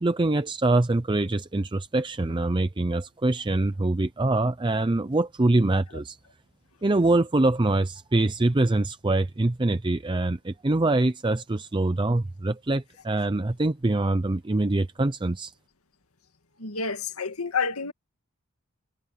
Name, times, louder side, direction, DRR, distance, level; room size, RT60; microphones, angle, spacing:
voice 1, 0.0-6.2 6.8-15.5, right 2 dB, 20° right, 0.6 m, -24 dB
voice 2, 16.6-17.9, left 5 dB, 85° left, 2.1 m, -29 dB
head